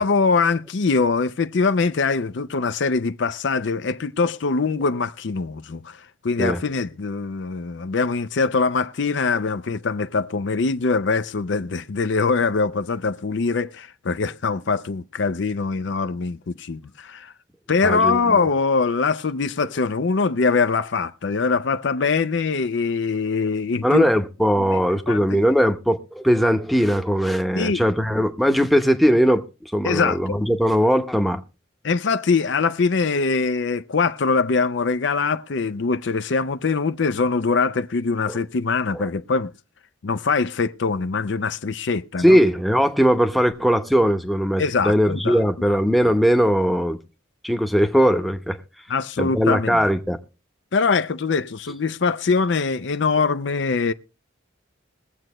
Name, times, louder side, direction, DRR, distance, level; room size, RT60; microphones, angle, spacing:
voice 1, 0.0-17.3 17.7-24.1 24.6-24.7 25.1-25.4 27.6-27.8 29.8-30.4 31.8-39.5 40.0-42.4 44.6-45.4 48.9-49.8 50.7-53.9, left 4 dB, 65° left, 0.5 m, -23 dB
voice 2, 17.8-18.4 23.8-29.4 29.7-31.4 38.3-38.4 38.9-39.1 42.2-47.0 47.4-48.6 49.2-50.2, equal, ahead, 0.8 m, -19 dB
22.0 x 7.7 x 3.0 m
head